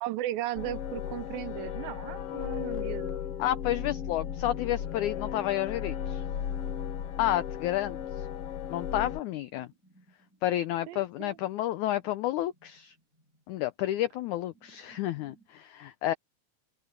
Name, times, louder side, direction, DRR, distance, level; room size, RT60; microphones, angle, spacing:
voice 1, 0.0-3.2 10.9-11.4, right 15 dB, 80° right, 2.6 m, -36 dB
sound 1, 0.5-9.2, left 9 dB, 70° left, 1.5 m, -35 dB
voice 2, 3.4-6.2 7.2-8.3 8.7-9.7 10.4-13.0 13.5-16.1, left 13 dB, 85° left, 1.7 m, -30 dB
sound 2, 5.8-15.5, right 4 dB, 25° left, 5.1 m, -64 dB
open air
omnidirectional pair, 4.3 m